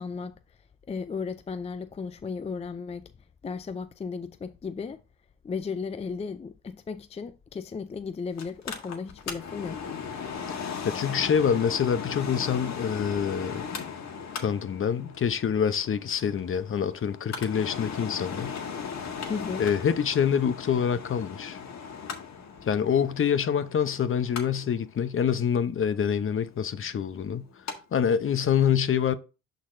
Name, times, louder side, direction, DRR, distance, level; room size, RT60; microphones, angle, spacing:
voice 1, 0.0-3.1 3.4-5.0 5.4-9.9 19.3-19.6, left 5 dB, 20° left, 0.4 m, -35 dB
Mechanical fan, 8.4-27.8 28.1-28.2, left 6 dB, 65° left, 1.6 m, -38 dB
voice 2, 10.5-13.6 14.4-18.6 19.6-21.6 22.6-27.5 27.9-29.1, left 7 dB, 45° left, 0.8 m, -26 dB
11.0 x 4.0 x 2.6 m
cardioid pair, 90°, 30 cm